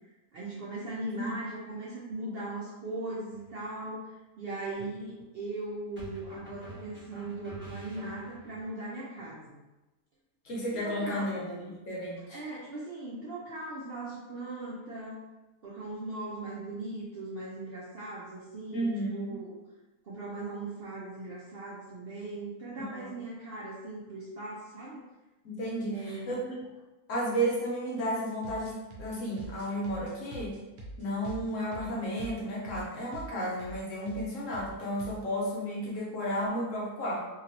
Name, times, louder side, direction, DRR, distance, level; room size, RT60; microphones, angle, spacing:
voice 1, 0.3-9.6 10.7-11.3 12.3-15.2 15.6-19.6 20.0-25.0 25.9-26.3, right 2 dB, 60° right, -6 dB, 0.6 m, -39 dB
sound 1, 3.3-3.5 6.0-8.6, right 1 dB, 10° right, 0.8 m, -46 dB
voice 2, 10.4-12.4 18.7-19.4 22.9-23.1 25.4-26.5 27.1-30.6 31.0-37.2, equal, 65° left, -4 dB, 1.1 m, -33 dB
sound 2, 28.3-32.8 33.1-33.3 33.6-33.8 34.1-34.3 34.5-35.2, right 2 dB, 80° right, 1.2 m, -44 dB
2.9 x 2.9 x 2.6 m, 1.1 s
omnidirectional pair, 1.5 m